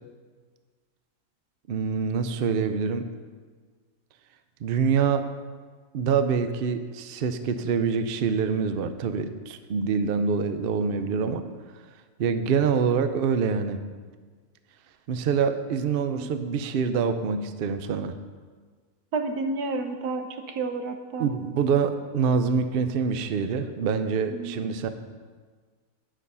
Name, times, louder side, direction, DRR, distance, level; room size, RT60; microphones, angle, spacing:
voice 1, 1.7-3.0 4.6-5.2 5.9-11.4 12.2-13.8 15.1-18.1 21.2-24.9, right 6 dB, 60° right, 9 dB, 0.6 m, -25 dB
voice 2, 19.1-21.3 24.3-24.9, right 3 dB, 85° right, 6 dB, 1.4 m, -31 dB
10.5 x 6.2 x 5.5 m, 1.5 s
omnidirectional pair, 1.6 m